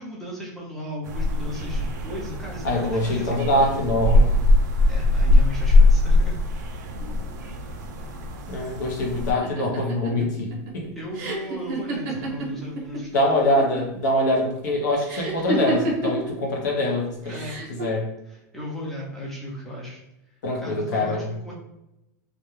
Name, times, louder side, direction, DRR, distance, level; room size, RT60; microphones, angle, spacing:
voice 1, 0.0-3.8 4.9-6.4 11.0-13.5 17.3-17.6 18.3-20.0 20.6-21.5, equal, 5° left, -4 dB, 0.5 m, -36 dB
sound 1, 1.0-9.3, left 2 dB, 90° right, 0.4 m, -21 dB
voice 2, 2.6-4.4 7.0-7.1 8.5-10.9 13.1-17.4 17.7-18.0 20.4-21.2, left 1 dB, 80° left, -1 dB, 0.7 m, -24 dB
sound 2, 9.4-13.0 13.3-14.0 15.1-16.3 17.3-17.8, right 2 dB, 40° right, 0.6 m, -29 dB
2.3 x 2.1 x 3.0 m, 0.89 s
supercardioid pair, 175°, 9 cm